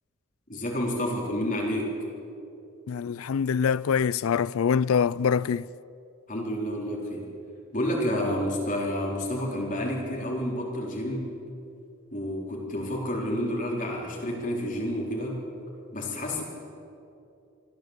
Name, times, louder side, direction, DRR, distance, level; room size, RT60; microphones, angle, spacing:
voice 1, 0.5-1.9 6.3-7.2 7.7-11.3 12.1-15.4 15.9-16.4, equal, 40° left, 4.0 m, -29 dB
voice 2, 2.9-5.7, left 6 dB, 80° left, 0.4 m, -24 dB
25.5 x 14.5 x 8.1 m
head